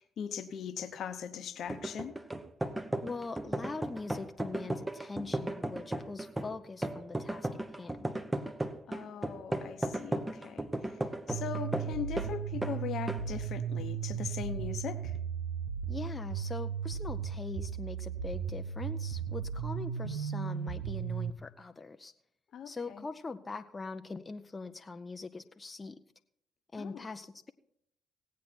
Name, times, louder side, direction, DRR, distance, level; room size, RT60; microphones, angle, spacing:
voice 1, 0.0-2.1 8.9-10.7 11.3-15.1 22.5-23.1 26.8-27.0, left 8 dB, 65° left, 11 dB, 0.9 m, -40 dB
sound 1, 1.7-12.3 12.6-12.8 13.1-13.3, right 1 dB, 15° right, 1.1 m, -35 dB
voice 2, 3.0-7.5 7.8-8.1 15.9-22.1 22.7-26.0 26.7-27.5, left 3 dB, 30° left, 8 dB, 0.6 m, -42 dB
sound 2, 11.3-21.3, right 7 dB, 90° right, 0.8 m, -36 dB
17.5 x 8.4 x 4.4 m, 0.73 s
hypercardioid pair, 50°, 0 cm